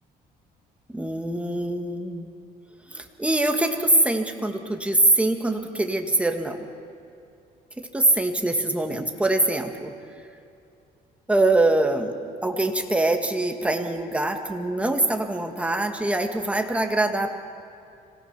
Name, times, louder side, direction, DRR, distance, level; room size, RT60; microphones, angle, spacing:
voice 1, 0.9-2.3 2.9-6.7 7.8-9.9 11.3-12.2 12.4-17.3, right 2 dB, 5° right, 5 dB, 1.7 m, -23 dB
26.0 x 16.5 x 5.9 m, 2.5 s
cardioid pair, 110°, 17 cm